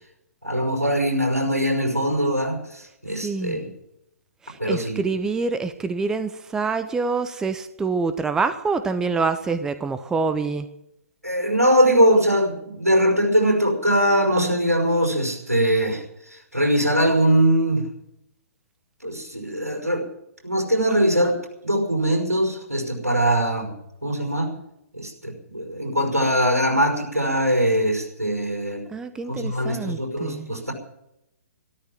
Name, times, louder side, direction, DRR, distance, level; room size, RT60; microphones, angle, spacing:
voice 1, 0.4-3.7 4.6-5.0 11.2-16.0 16.3-17.9 19.0-20.0 20.4-21.4 21.6-23.7 24.0-24.5 24.9-28.8 29.3-30.7, equal, 85° right, 3 dB, 5.4 m, -21 dB
voice 2, 3.2-3.6 4.4-10.7 28.9-30.5, right 4 dB, 5° right, 11 dB, 0.7 m, -26 dB
13.5 x 13.5 x 7.6 m, 0.82 s
figure-of-eight pair, 125°, 8 cm